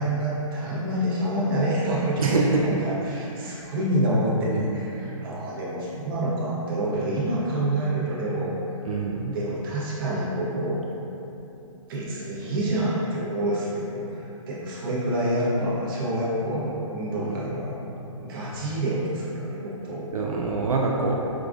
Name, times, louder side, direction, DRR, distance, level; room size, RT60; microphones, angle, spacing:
voice 1, 0.0-8.6 9.3-10.8 11.9-17.8 18.2-20.1, right 1 dB, 40° right, -6 dB, 0.8 m, -27 dB
voice 2, 2.2-2.6 4.5-4.8 8.9-9.4 17.3-17.5 20.1-21.1, right 4 dB, 85° right, -1 dB, 0.4 m, -25 dB
4.7 x 2.4 x 2.4 m, 2.9 s
hypercardioid pair, 150°, 18 cm